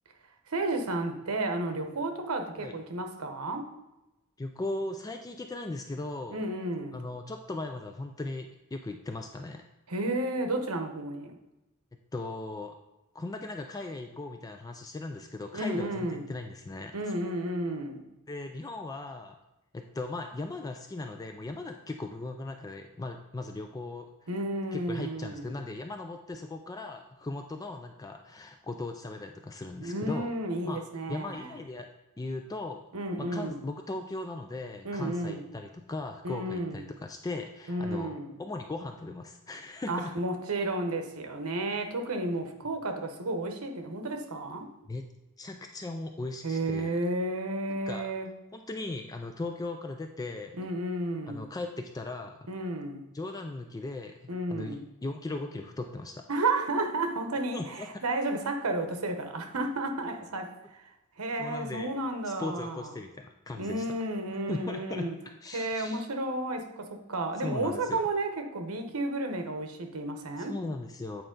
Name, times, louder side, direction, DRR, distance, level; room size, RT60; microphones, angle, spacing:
voice 1, 0.5-3.7 6.3-7.0 9.9-11.4 15.5-16.2 16.9-18.0 24.3-25.5 29.8-31.5 32.9-33.6 34.8-35.4 36.2-36.8 37.7-38.4 39.9-44.7 46.4-48.3 50.5-51.5 52.5-53.0 54.3-54.8 56.3-60.8 61.2-62.9 63.6-65.2 65.5-70.5, right 2 dB, 75° right, 5 dB, 0.9 m, -32 dB
voice 2, 4.4-6.4 6.9-9.6 12.1-12.7 13.1-16.9 18.3-19.4 19.7-24.1 24.7-30.3 30.6-30.8 31.1-31.9 32.2-32.9 33.2-38.1 38.4-40.2 44.9-45.0 45.4-47.0 47.7-48.1 48.5-50.6 51.3-52.5 53.1-56.2 57.5-57.9 61.4-61.9 62.3-63.9 64.5-65.1 65.4-66.0 67.4-68.0 70.4-71.2, left 2 dB, 15° left, 5 dB, 0.3 m, -38 dB
8.8 x 4.4 x 3.8 m, 0.97 s
head